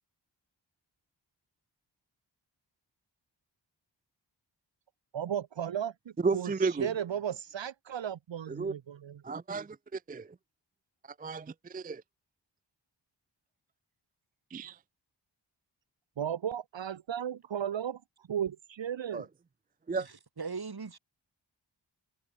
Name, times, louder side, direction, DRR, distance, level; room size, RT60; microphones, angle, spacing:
voice 1, 5.1-5.9 6.3-9.2 16.2-18.0 18.3-19.3, right 9 dB, 80° right, 1.0 m, -35 dB
voice 2, 6.2-6.9 8.5-8.7 9.2-10.3 11.2-12.0 14.5-14.8 19.1-19.3 19.9-20.1, right 4 dB, 20° right, 0.4 m, -33 dB
voice 3, 19.9-21.0, right 5 dB, 55° right, 4.1 m, -40 dB
wide cardioid pair, 85°, 44 cm